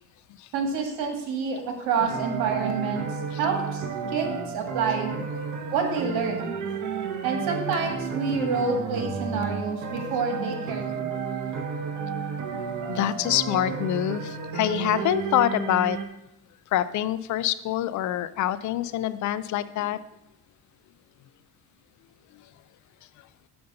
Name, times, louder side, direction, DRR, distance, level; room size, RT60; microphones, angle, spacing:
voice 1, 0.5-3.1 3.4-3.8 4.1-5.1 5.7-6.6 7.2-11.1, right 5 dB, 90° right, 1.8 m, -28 dB
sound 1, 2.0-16.1, right 6 dB, 55° right, 1.1 m, -32 dB
voice 2, 12.5-16.0 16.7-20.0, left 12 dB, 55° left, 0.5 m, -26 dB
7.0 x 5.2 x 6.5 m
cardioid pair, 135°, 35 cm